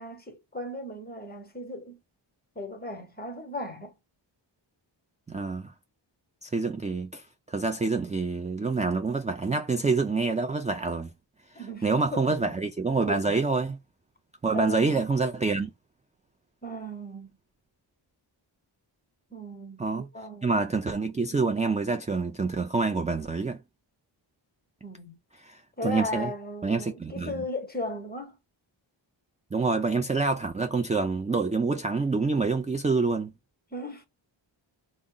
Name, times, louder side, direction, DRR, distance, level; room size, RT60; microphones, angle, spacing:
voice 1, 0.0-2.0 2.5-4.0 11.5-12.6 13.1-13.2 14.5-15.1 16.6-17.4 19.3-20.5 24.8-25.2 25.8-28.4 33.7-34.1, left 1 dB, 20° left, 0.9 m, -37 dB
voice 2, 5.3-5.7 6.4-11.1 11.8-13.8 14.4-15.7 19.8-20.0 20.4-23.6 25.4-26.3 26.6-27.4 29.5-33.3, right 4 dB, 15° right, 0.3 m, -27 dB
3.6 x 2.0 x 3.7 m
wide cardioid pair, 105°, 47 cm